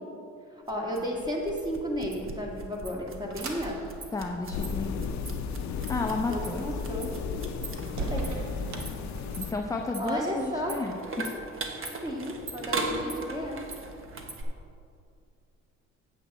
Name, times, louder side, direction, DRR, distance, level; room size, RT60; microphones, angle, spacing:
voice 1, 0.5-3.8 6.0-7.1 7.8-8.3 10.0-10.7 12.0-13.6, equal, 15° right, -2 dB, 1.9 m, -33 dB
sound 1, 0.7-14.4, right 3 dB, 45° right, 1.1 m, -39 dB
sound 2, 2.7-9.7, right 3 dB, 65° right, 1.2 m, -41 dB
voice 2, 4.1-5.0 5.9-6.6 9.4-11.3, left 3 dB, 10° left, 2 dB, 0.6 m, -32 dB
sound 3, 4.5-9.5, left 6 dB, 65° left, 0.6 m, -34 dB
8.1 x 8.1 x 4.1 m, 2.5 s
cardioid pair, 90°, 30 cm